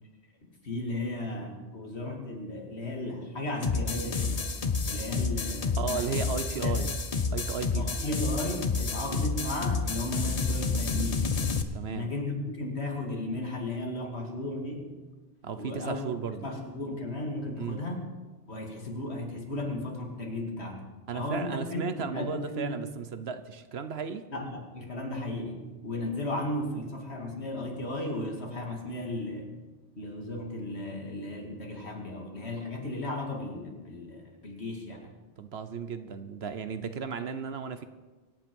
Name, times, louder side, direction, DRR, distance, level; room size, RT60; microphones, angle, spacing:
voice 1, 0.6-4.5 4.9-6.3 6.5-6.8 7.7-11.3 11.9-14.9 15.6-16.0 16.3-18.0 18.5-22.8 24.3-29.5 30.0-35.1, left 1 dB, 65° left, 1 dB, 2.7 m, -35 dB
sound 1, 3.6-11.6, left 4 dB, 35° left, 0.9 m, -29 dB
voice 2, 5.8-7.0 7.3-8.1 9.1-9.2 11.7-12.1 15.4-16.5 17.6-17.8 21.1-24.2 35.4-37.8, right 6 dB, 65° right, 11 dB, 1.1 m, -35 dB
24.5 x 8.8 x 5.4 m, 1.3 s
omnidirectional pair, 1.2 m